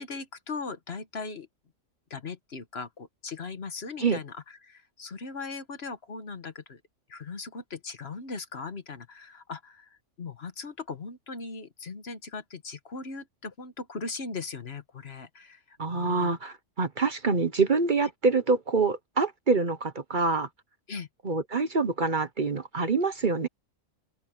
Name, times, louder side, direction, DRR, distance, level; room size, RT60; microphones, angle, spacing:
voice 1, 0.0-1.5 2.1-6.8 7.1-16.3 20.9-21.1, left 4 dB, 55° left, 1.5 m, -39 dB
voice 2, 15.8-20.5 21.2-23.5, right 4 dB, 40° right, 1.1 m, -26 dB
open air
omnidirectional pair, 1.3 m